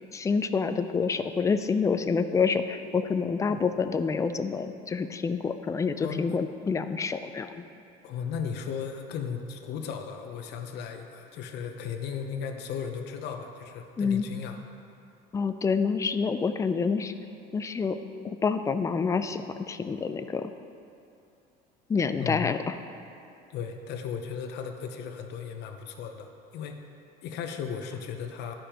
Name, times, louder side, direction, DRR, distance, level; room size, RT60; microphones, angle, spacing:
voice 1, 0.1-7.6 14.0-14.2 15.3-17.1 17.5-18.0 18.2-20.5 21.9-22.8, left 5 dB, 15° left, 10 dB, 0.3 m, -27 dB
voice 2, 8.0-14.6 22.2-22.6 23.5-26.9 27.2-28.5, left 7 dB, 60° left, 5 dB, 0.8 m, -36 dB
12.0 x 5.0 x 2.9 m, 2.6 s
supercardioid pair, 105°, 20 cm